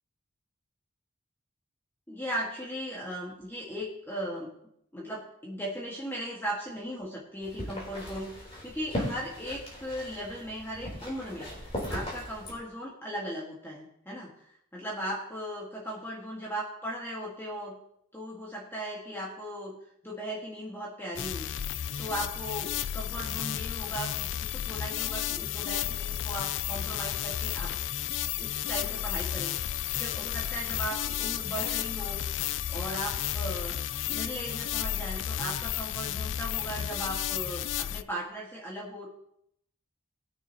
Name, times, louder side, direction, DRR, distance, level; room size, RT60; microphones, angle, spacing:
voice 1, 2.1-4.5 4.9-14.3 14.7-17.8 18.1-19.8 20.0-21.5 22.0-27.7 28.4-29.6 30.0-32.2 32.7-33.8 34.1-39.1, equal, 10° left, -4 dB, 1.8 m, -37 dB
sound 1, 7.4-12.5, equal, 30° left, 3.8 m, -38 dB
sound 2, 21.1-38.0, left 10 dB, 65° left, 0.4 m, -32 dB
20.5 x 6.8 x 3.0 m, 0.74 s
head